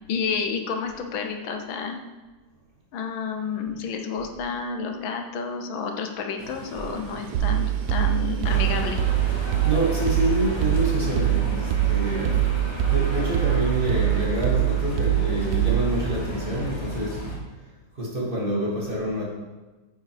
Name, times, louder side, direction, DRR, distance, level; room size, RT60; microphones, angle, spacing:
voice 1, 0.1-2.0 2.9-9.0, left 5 dB, 80° left, 4 dB, 1.6 m, -30 dB
Train, 6.4-13.2, right 3 dB, 55° right, 1.4 m, -42 dB
sound 1, 7.3-16.0, right 14 dB, 70° right, 1.3 m, -23 dB
sound 2, 8.4-17.4, right 1 dB, 15° left, 1.3 m, -33 dB
voice 2, 9.4-12.5 12.9-17.3 18.0-19.2, right 1 dB, 30° right, -4 dB, 1.8 m, -27 dB
9.6 x 4.8 x 4.7 m, 1.2 s
omnidirectional pair, 2.2 m